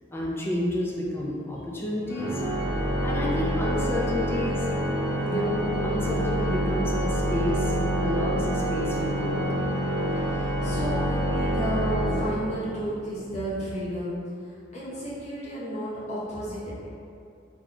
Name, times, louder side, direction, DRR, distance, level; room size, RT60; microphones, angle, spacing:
voice 1, 0.1-2.4 3.0-4.7 5.2-7.7 8.0-9.4 10.7-10.8, left 1 dB, 15° left, -3 dB, 0.4 m, -30 dB
Organ, 2.1-12.9, equal, 10° right, 0.7 m, -27 dB
voice 2, 10.0-14.2 14.4-16.9, equal, 40° left, -9 dB, 0.8 m, -33 dB
2.9 x 2.3 x 3.8 m, 2.5 s
head